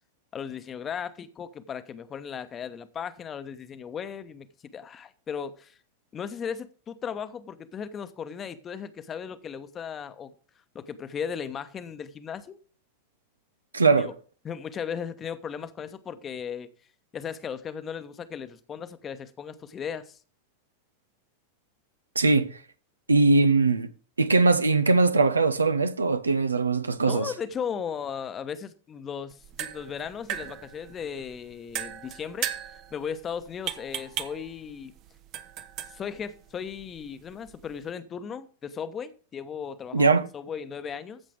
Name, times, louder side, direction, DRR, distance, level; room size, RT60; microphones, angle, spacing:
voice 1, 0.3-5.8 6.1-10.3 10.7-12.6 14.0-14.1 14.4-16.7 17.1-20.2 27.0-32.5 32.9-34.9 35.9-41.2, left 7 dB, 25° left, 1.1 m, -36 dB
voice 2, 13.7-14.1 22.1-22.5 23.1-23.9 24.2-27.3 39.9-40.3, right 3 dB, 75° right, 0.9 m, -21 dB
sound 1, 29.3-37.9, right 11 dB, 40° right, 1.0 m, -38 dB
14.5 x 7.4 x 3.5 m
figure-of-eight pair, 90°, 0 cm